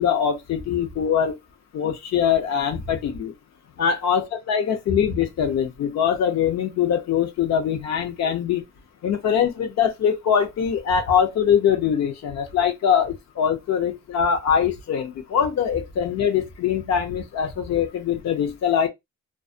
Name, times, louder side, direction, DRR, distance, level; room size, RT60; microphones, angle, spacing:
voice 1, 0.0-1.3 1.7-3.3 3.8-8.6 9.0-18.9, left 8 dB, 60° left, 0.7 m, -22 dB
2.4 x 2.0 x 2.5 m
cardioid pair, 90°, 30 cm